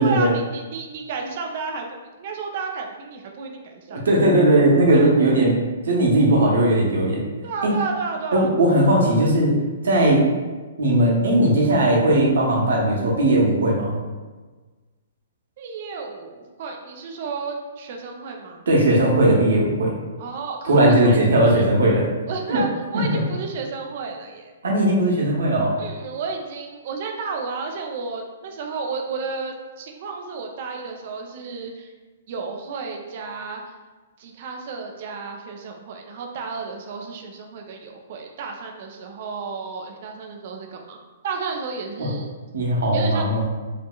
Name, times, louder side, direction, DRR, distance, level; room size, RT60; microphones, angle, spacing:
voice 1, 0.0-4.0 4.4-4.5 4.9-5.1 7.4-8.5 15.6-18.6 20.2-21.2 21.4-21.6 22.3-24.5 25.8-31.9 32.3-33.6 34.2-41.0 41.2-42.3 42.9-43.3, right 4 dB, 45° right, 2 dB, 0.6 m, -32 dB
voice 2, 3.9-7.2 8.3-9.6 9.8-10.2 10.8-13.9 18.7-19.9 20.7-22.1 22.5-22.6 22.9-23.2 24.6-25.7 42.0-42.1 42.5-43.4, right 1 dB, 60° right, -2 dB, 1.1 m, -18 dB
5.2 x 2.7 x 2.4 m, 1.3 s
figure-of-eight pair, 115°, 0 cm